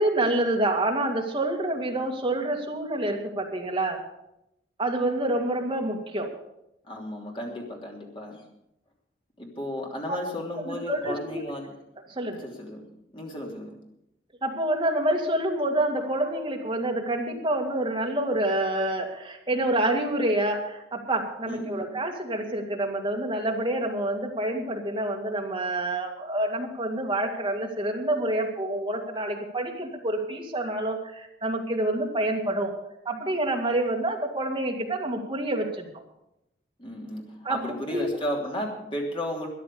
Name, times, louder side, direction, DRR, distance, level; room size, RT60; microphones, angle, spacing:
voice 1, 0.0-4.0 4.8-6.3 10.6-11.4 12.2-12.5 14.4-32.7 33.1-35.9 37.4-37.6 37.9-38.1, right 1 dB, 25° right, 1 dB, 2.1 m, -27 dB
voice 2, 6.9-8.4 9.4-11.7 12.4-12.9 13.1-13.7 21.5-21.9 36.8-37.2 37.5-39.5, equal, 30° left, 0 dB, 3.0 m, -34 dB
13.5 x 10.5 x 6.9 m, 0.86 s
head